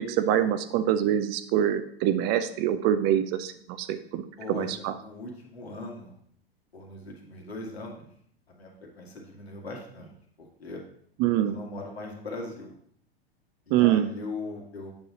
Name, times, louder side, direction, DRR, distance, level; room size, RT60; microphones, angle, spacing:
voice 1, 0.0-4.9 11.2-11.6 13.7-14.1, right 11 dB, 35° right, 11 dB, 0.5 m, -25 dB
voice 2, 4.4-6.2 6.7-8.1 8.5-10.8 11.5-12.8 13.7-14.9, left 2 dB, 80° left, -1 dB, 2.0 m, -40 dB
8.5 x 6.2 x 2.9 m, 0.65 s
figure-of-eight pair, 95°, 31 cm